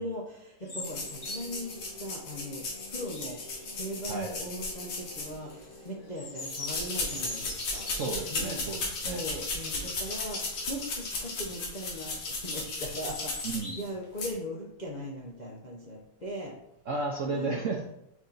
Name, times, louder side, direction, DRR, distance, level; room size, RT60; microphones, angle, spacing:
voice 1, 0.0-3.4 3.7-7.9 8.3-8.6 9.0-16.5 17.3-17.6, equal, 55° left, -4 dB, 0.5 m, -39 dB
sound 1, 0.6-1.8 2.3-3.9 4.6-5.1 5.5-8.3 8.9-9.1 9.5-9.6 9.9-10.3 10.8-11.5 12.0-13.8, left 1 dB, 35° left, 1.5 m, -43 dB
sound 2, 0.7-12.5, left 1 dB, 40° right, 1.8 m, -52 dB
sound 3, 0.8-5.7 6.4-13.9 14.2-14.3, left 3 dB, 75° left, 2.2 m, -36 dB
voice 2, 7.9-9.2 13.4-13.8 16.9-17.9, right 3 dB, 75° right, 0 dB, 0.7 m, -33 dB
5.9 x 4.3 x 3.9 m, 0.80 s
omnidirectional pair, 2.2 m